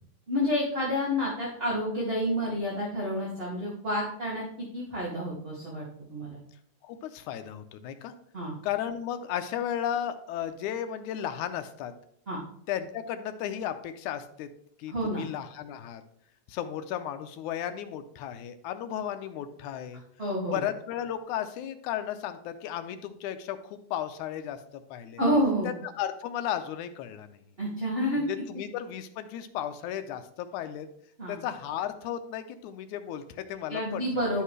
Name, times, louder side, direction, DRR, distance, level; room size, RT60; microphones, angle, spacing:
voice 1, 0.3-5.8 6.1-6.4 8.3-8.5 12.3-12.4 14.9-15.2 20.2-20.6 25.2-25.7 27.6-28.2 31.2-31.4 33.7-34.4, equal, 25° right, -5 dB, 1.8 m, -29 dB
voice 2, 6.9-8.1 8.6-11.9 12.7-14.5 14.8-16.0 16.5-20.0 20.5-24.6 24.9-25.2 25.6-27.4 28.2-30.9 31.3-34.2, left 10 dB, 80° left, 9 dB, 2.1 m, -34 dB
11.5 x 5.7 x 3.2 m, 0.68 s
omnidirectional pair, 3.5 m